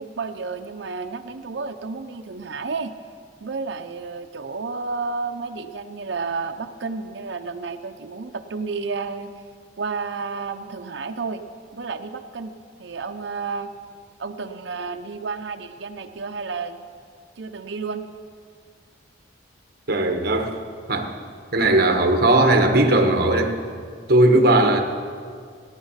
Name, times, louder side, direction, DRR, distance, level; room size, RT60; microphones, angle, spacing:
voice 1, 0.0-2.9 3.4-9.3 9.8-11.4 11.7-12.5 12.8-13.7 14.2-16.9 17.4-18.0, right 4 dB, 75° right, 5 dB, 0.7 m, -31 dB
voice 2, 19.9-20.5 20.9-21.1 21.5-23.6 24.1-24.8, right 2 dB, 55° right, 5 dB, 1.4 m, -17 dB
17.5 x 10.5 x 5.7 m, 2.1 s
head